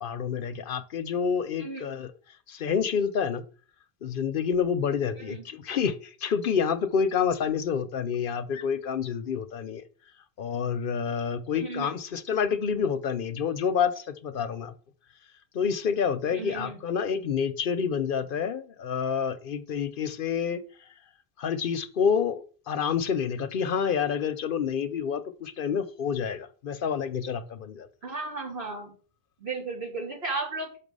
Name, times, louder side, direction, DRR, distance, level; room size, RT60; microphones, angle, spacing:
voice 1, 0.0-2.1 2.5-3.4 4.0-9.8 10.4-14.7 15.5-20.6 21.4-27.9, left 7 dB, 60° left, 11 dB, 0.8 m, -28 dB
voice 2, 11.5-12.0 16.3-16.8 28.0-28.9 29.4-30.8, right 3 dB, 90° right, -2 dB, 3.1 m, -34 dB
6.2 x 5.6 x 5.3 m, 0.40 s
omnidirectional pair, 1.0 m